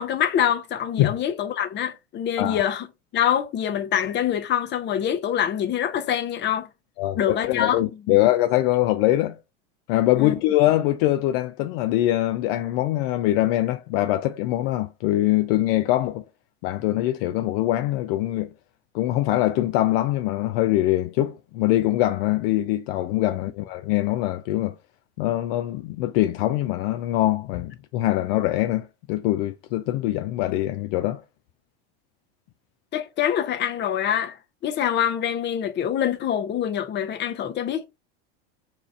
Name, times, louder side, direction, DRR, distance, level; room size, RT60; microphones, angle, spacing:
voice 1, 0.0-2.9 3.1-6.7 7.2-7.8 8.1-8.2 10.2-10.4 32.9-34.4 34.6-37.9, left 9 dB, 35° left, 0.7 m, -25 dB
voice 2, 7.0-9.4 9.9-16.2 16.6-18.5 18.9-24.7 25.2-31.2, left 15 dB, 65° left, 0.4 m, -23 dB
2.8 x 2.4 x 4.1 m
supercardioid pair, 110°, 31 cm